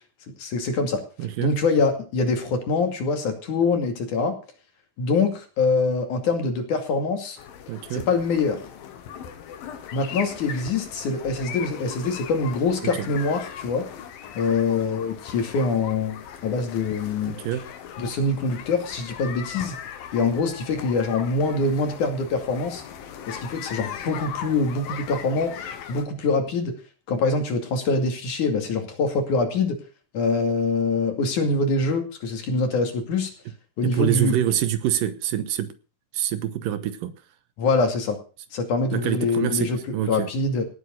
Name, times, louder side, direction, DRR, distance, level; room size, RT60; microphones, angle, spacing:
voice 1, 0.4-1.0 1.4-4.4 5.0-7.4 7.9-8.6 9.9-13.9 14.4-17.4 18.0-19.8 20.1-22.8 23.3-25.5 25.9-26.7 27.1-29.8 30.1-33.3 33.8-34.5 37.6-38.2 38.5-39.8 40.1-40.7, left 3 dB, 60° left, 3.8 m, -24 dB
voice 2, 1.2-1.6 7.7-8.1 12.8-13.1 17.3-17.7 33.8-35.7 36.1-37.1 38.9-40.3, right 11 dB, 75° right, 2.8 m, -26 dB
sound 1, 7.4-26.0, left 8 dB, 85° left, 3.4 m, -39 dB
18.5 x 8.2 x 6.4 m
omnidirectional pair, 4.1 m